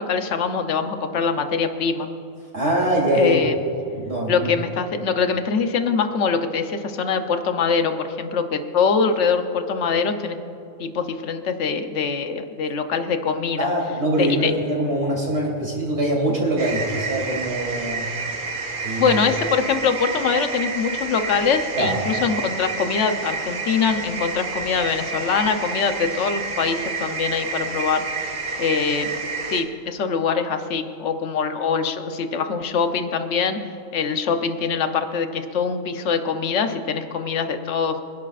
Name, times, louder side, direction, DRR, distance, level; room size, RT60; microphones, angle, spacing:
voice 1, 0.0-2.1 3.1-3.6 4.3-10.4 10.8-13.7 14.2-14.5 19.0-28.3 28.6-29.2 29.5-33.6 33.9-38.1, left 5 dB, 60° left, 7 dB, 1.2 m, -23 dB
voice 2, 2.5-3.4 3.9-4.5 13.6-18.1 18.8-19.2 21.8-21.9, right 1 dB, 55° right, -3 dB, 3.6 m, -23 dB
sound 1, 16.6-29.6, right 4 dB, 90° right, 1.6 m, -29 dB
26.0 x 11.0 x 2.5 m, 2.7 s
omnidirectional pair, 1.4 m